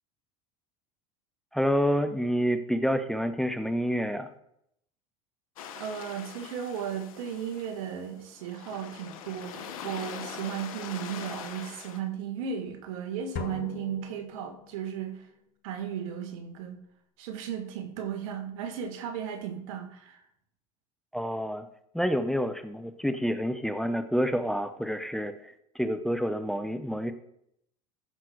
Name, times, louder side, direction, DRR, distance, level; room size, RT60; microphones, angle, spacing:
voice 1, 1.5-4.3 21.1-21.7 21.9-27.1, equal, ahead, 10 dB, 0.8 m, -28 dB
sound 1, 5.6-12.0, left 8 dB, 85° left, 1.3 m, -43 dB
voice 2, 5.7-15.3 15.6-16.8 17.2-20.2, right 8 dB, 75° right, 7 dB, 1.9 m, -35 dB
sound 2, 13.4-15.0, left 10 dB, 60° left, 0.9 m, -41 dB
14.5 x 5.9 x 4.6 m, 0.73 s
supercardioid pair, 95°, 17 cm